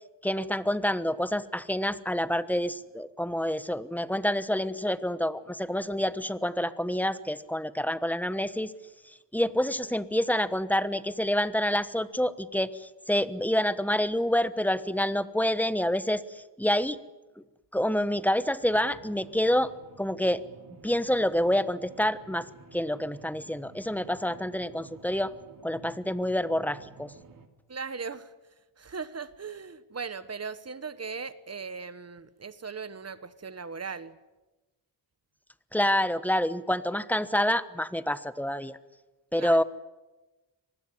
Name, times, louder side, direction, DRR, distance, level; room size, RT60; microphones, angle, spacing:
voice 1, 0.2-8.7 9.1-17.0 17.7-19.7 20.0-20.4 20.8-22.5 22.7-25.3 25.6-27.1 35.7-38.8 39.3-39.6, left 1 dB, 5° left, 1.1 m, -27 dB
sound 1, 18.6-27.5, right 4 dB, 50° right, 2.9 m, -52 dB
voice 2, 27.7-28.3 28.8-34.2 39.4-39.6, right 5 dB, 35° right, 1.3 m, -38 dB
24.5 x 20.0 x 9.9 m
cardioid pair, 95°, 42 cm